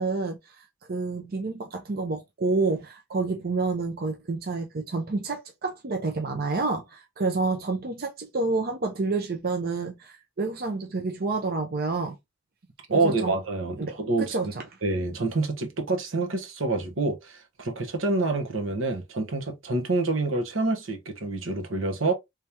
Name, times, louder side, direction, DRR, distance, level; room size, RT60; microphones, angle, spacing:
voice 1, 0.0-12.2 12.9-13.3 13.8-14.0 14.3-14.5, right 3 dB, 50° right, 0.6 m, -29 dB
voice 2, 12.9-14.4 14.8-22.1, right 3 dB, 85° right, 1.1 m, -27 dB
3.5 x 3.3 x 2.8 m
head